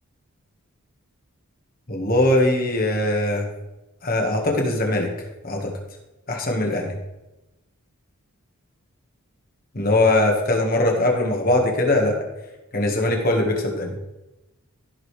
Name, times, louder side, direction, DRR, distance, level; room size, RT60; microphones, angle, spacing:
voice 1, 1.9-3.5 4.0-5.1 5.4-5.7 6.3-7.0 9.7-12.2 12.7-13.9, left 1 dB, 40° left, 1 dB, 1.6 m, -21 dB
15.5 x 5.4 x 3.3 m, 1.0 s
head